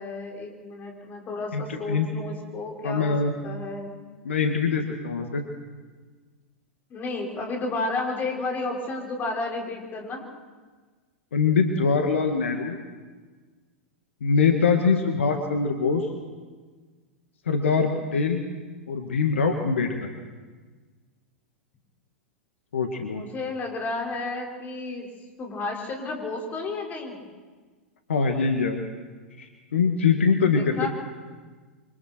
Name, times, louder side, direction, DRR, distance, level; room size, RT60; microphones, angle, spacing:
voice 1, 0.0-3.1 3.4-3.9 6.9-10.3 23.1-25.1 25.4-27.2 30.5-30.9, left 3 dB, 25° left, 0 dB, 5.5 m, -32 dB
voice 2, 1.5-2.1 2.8-3.3 4.2-5.4 11.3-12.8 14.2-16.1 17.5-18.4 18.9-20.0 22.7-23.2 28.1-28.8 29.4-30.9, left 5 dB, 70° left, 4 dB, 2.0 m, -23 dB
26.5 x 25.0 x 4.6 m, 1.4 s
figure-of-eight pair, 95°, 7 cm